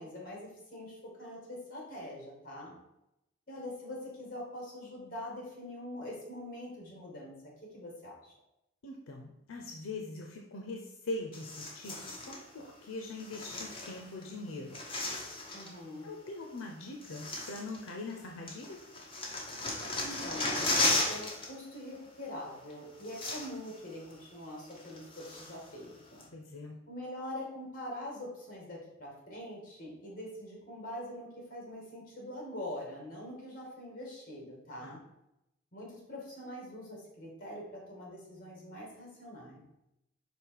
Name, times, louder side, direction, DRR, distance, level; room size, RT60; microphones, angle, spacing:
voice 1, 0.0-2.7 3.5-7.3 7.7-8.3 15.5-16.1 20.0-26.3 26.9-35.0 35.7-39.6, left 1 dB, 45° left, -2 dB, 2.2 m, -44 dB
voice 2, 8.8-14.8 16.0-18.8 26.3-26.8 34.8-35.0, left 2 dB, 80° left, 2 dB, 0.6 m, -42 dB
sound 1, 11.3-12.4 13.2-14.2 14.5-15.8 16.6-16.7 17.0-18.2 18.5-21.5 21.7-22.0 22.7-22.8 23.0-23.8 24.1-24.2 24.7-25.7 26.2-26.3, left 2 dB, 25° left, 1.1 m, -35 dB
5.3 x 3.9 x 4.7 m, 0.87 s
head